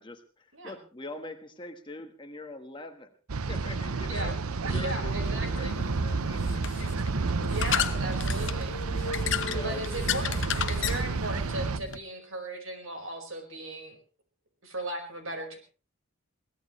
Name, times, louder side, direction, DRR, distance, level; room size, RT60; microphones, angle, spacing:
voice 1, 0.0-3.1 3.5-4.4 4.6-6.6 7.9-8.2 9.4-10.1, left 2 dB, 20° left, 6 dB, 1.4 m, -43 dB
sound 1, 3.3-11.8, right 3 dB, 90° right, 0.8 m, -30 dB
voice 2, 4.0-4.3 4.6-5.7 7.4-8.7 9.6-14.0 14.6-15.6, right 1 dB, 65° right, 5 dB, 4.9 m, -37 dB
sound 2, 5.1-12.0, left 7 dB, 55° left, 0.9 m, -34 dB
22.5 x 17.5 x 3.2 m, 0.36 s
head